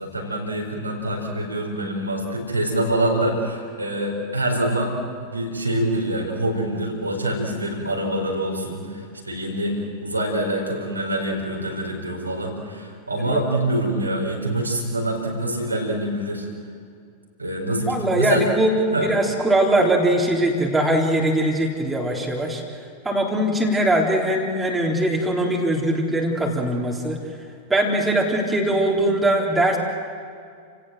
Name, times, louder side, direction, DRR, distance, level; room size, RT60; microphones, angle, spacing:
voice 1, 0.0-4.9 5.3-16.5 17.4-18.5 18.9-19.1, right 1 dB, 85° right, -1 dB, 4.6 m, -25 dB
voice 2, 17.8-22.6 23.0-27.2 27.7-29.8, right 1 dB, 10° right, -2 dB, 3.8 m, -21 dB
29.5 x 17.5 x 7.6 m, 2.3 s
figure-of-eight pair, 90°, 0 cm